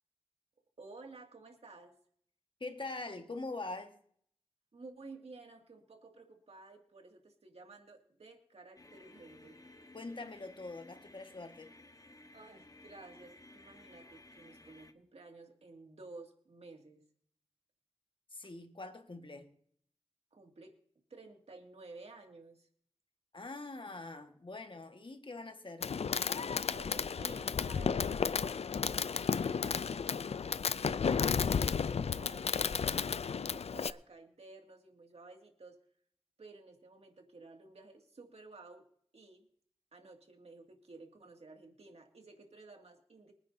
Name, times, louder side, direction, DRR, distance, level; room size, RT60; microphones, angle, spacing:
voice 1, 0.8-1.9 4.7-9.6 12.3-17.0 20.3-20.7 21.1-22.7 26.6-35.8 36.4-38.8 39.1-39.5 39.9-43.3, right 3 dB, 85° right, 2.2 m, -54 dB
voice 2, 2.6-4.0 9.9-11.7 18.3-19.5 23.3-25.9, left 2 dB, 55° left, 1.6 m, -43 dB
sound 1, 8.8-14.9, left 2 dB, 35° left, 1.2 m, -57 dB
Fireworks, 25.8-33.9, left 6 dB, 85° left, 0.4 m, -33 dB
25.0 x 9.5 x 2.7 m
wide cardioid pair, 60°, 10 cm